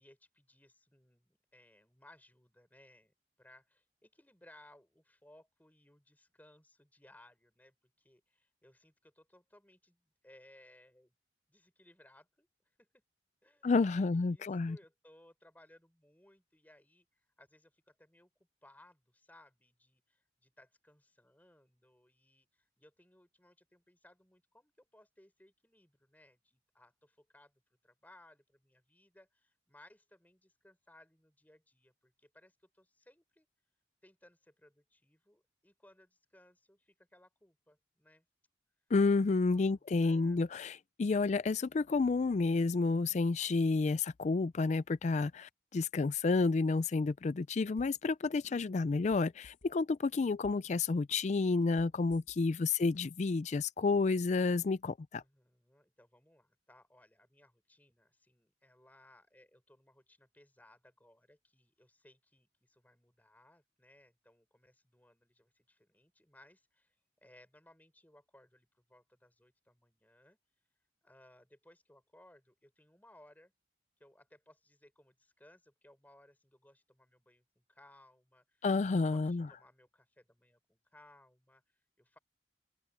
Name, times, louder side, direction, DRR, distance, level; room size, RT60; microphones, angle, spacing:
voice 1, 0.0-11.1 11.5-13.0 13.4-13.7 14.0-18.3 18.6-27.5 27.8-33.5 34.0-38.2 39.5-40.4 52.5-52.8 55.2-70.4 71.0-73.5 74.0-78.7 79.1-82.2, left 1 dB, 10° left, 4.9 m, -63 dB
voice 2, 13.6-14.8 38.9-55.2 78.6-79.5, left 3 dB, 40° left, 0.4 m, -30 dB
sound 1, 47.8-48.1 48.4-50.0 50.3-50.8 51.1-52.6 52.9-53.0, left 2 dB, 90° left, 1.2 m, -59 dB
head